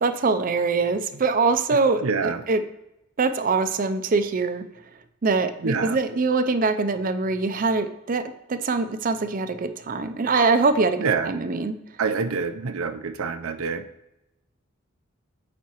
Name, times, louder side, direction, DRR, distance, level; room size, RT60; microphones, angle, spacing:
voice 1, 0.0-2.6 3.2-4.6 5.2-8.2 8.5-11.7, right 4 dB, 40° right, 9 dB, 0.5 m, -23 dB
voice 2, 2.0-2.4 5.6-6.0 11.0-11.3 12.0-13.8, right 5 dB, 85° right, 9 dB, 0.6 m, -26 dB
9.3 x 4.2 x 3.0 m, 0.90 s
head